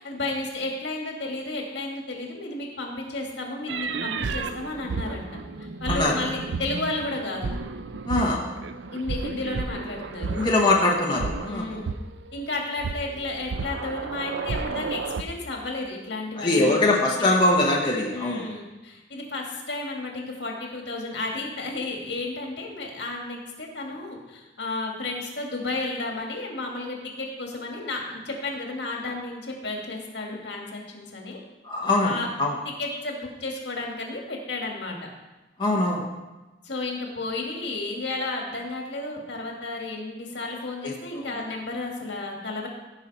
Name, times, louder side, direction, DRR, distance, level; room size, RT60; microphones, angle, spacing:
voice 1, 0.0-5.3 5.6-7.5 8.9-10.5 11.5-11.9 12.3-16.9 17.2-17.3 18.1-31.4 32.0-32.3 32.8-35.1 36.6-42.7, left 2 dB, 70° left, 0 dB, 2.0 m, -32 dB
sound 1, 3.7-10.8 11.2-12.3 12.8-15.2, right 4 dB, 75° right, 0.5 m, -32 dB
voice 2, 5.9-6.2 8.1-8.4 10.4-11.8 16.4-18.4 31.6-32.5 35.6-36.0 40.8-40.9, left 2 dB, 25° left, -3 dB, 1.1 m, -22 dB
15.5 x 5.6 x 4.1 m, 1.1 s
head